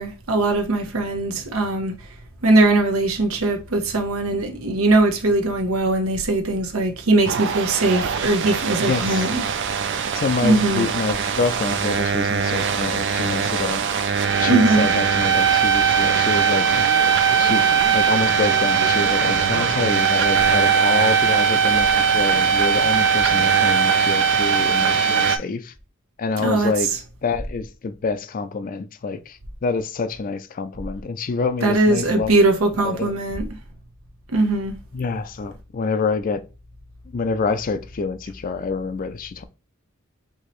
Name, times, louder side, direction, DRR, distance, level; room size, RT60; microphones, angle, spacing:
voice 1, 0.0-1.9 2.4-9.4 10.4-10.8 14.5-14.8 26.4-26.7 31.6-33.5 34.3-34.7, right 2 dB, 85° right, 0.9 m, -20 dB
sound 1, 7.2-25.4, right 6 dB, 60° right, 0.4 m, -20 dB
voice 2, 8.8-9.3 10.1-13.8 14.4-16.7 17.4-17.6 17.9-25.7 26.2-26.9 27.2-32.4 32.8-33.1 34.9-36.4 37.1-39.4, left 4 dB, 40° left, 0.4 m, -26 dB
4.6 x 2.9 x 3.0 m
head